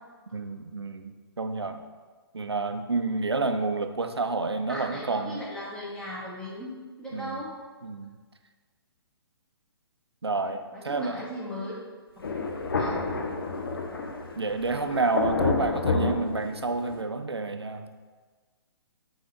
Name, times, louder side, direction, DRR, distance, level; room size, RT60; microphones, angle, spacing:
voice 1, 0.3-1.8 2.3-5.4 7.1-7.4 7.8-8.2 10.2-11.2 14.4-17.9, right 3 dB, 75° right, 7 dB, 0.6 m, -29 dB
voice 2, 4.7-6.7 7.0-7.5 10.7-11.7 12.7-12.9, equal, 5° left, -6 dB, 1.3 m, -37 dB
Thunder, 12.2-17.0, left 4 dB, 60° left, 0.7 m, -29 dB
5.3 x 4.1 x 5.0 m, 1.4 s
figure-of-eight pair, 125°, 14 cm